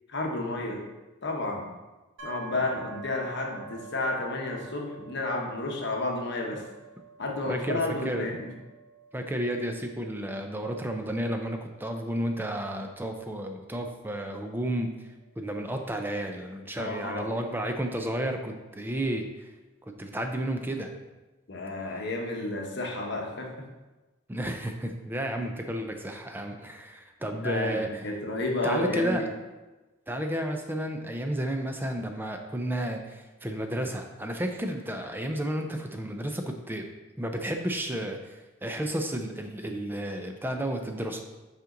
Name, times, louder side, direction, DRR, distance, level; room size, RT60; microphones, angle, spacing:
voice 1, 0.1-0.8 1.2-1.7 2.2-6.6 7.2-8.5 16.8-17.3 21.5-23.5 27.3-29.3, left 2 dB, 55° left, 1 dB, 1.0 m, -31 dB
sound 1, 2.2-15.9, right 5 dB, 90° right, 1.8 m, -49 dB
voice 2, 7.5-8.3 9.1-14.9 15.4-19.3 20.0-20.9 24.3-28.1 28.6-29.2 30.1-36.9 37.2-41.2, right 1 dB, 10° right, 4 dB, 0.5 m, -32 dB
5.5 x 5.1 x 3.8 m, 1.1 s
head